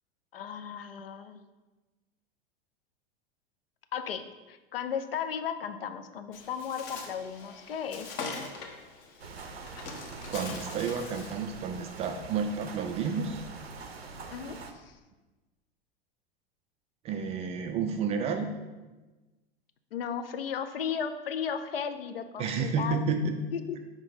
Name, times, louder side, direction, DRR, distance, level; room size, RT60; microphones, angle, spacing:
voice 1, 0.3-1.4 3.9-8.1 14.3-15.0 19.9-23.1 23.5-23.8, left 7 dB, 70° left, 9 dB, 0.5 m, -35 dB
Bird, 6.3-11.4, left 4 dB, 45° left, 1.0 m, -42 dB
sound 1, 9.2-14.7, right 4 dB, 80° right, 0.6 m, -44 dB
voice 2, 10.3-13.4 17.0-18.5 22.4-23.4, right 5 dB, 20° right, 6 dB, 0.3 m, -31 dB
4.7 x 3.7 x 5.4 m, 1.2 s
figure-of-eight pair, 85°, 30 cm